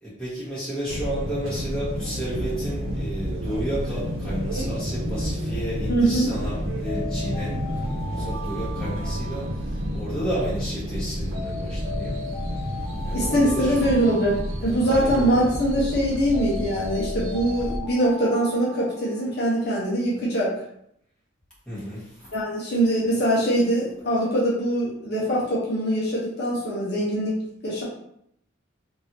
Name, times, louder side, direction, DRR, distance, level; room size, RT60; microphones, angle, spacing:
voice 1, 0.0-7.5 7.9-12.2 13.0-13.9 14.8-15.5 21.7-22.3, right 1 dB, 5° left, -10 dB, 1.3 m, -32 dB
sound 1, 0.9-17.8, equal, 90° right, 0.8 m, -30 dB
voice 2, 5.9-6.3 13.1-20.5 22.3-27.8, right 1 dB, 55° left, -5 dB, 0.8 m, -23 dB
Alarm, 6.8-10.2 11.3-15.2 16.3-19.6, left 2 dB, 40° right, 0.7 m, -38 dB
3.3 x 2.7 x 2.8 m, 0.73 s
head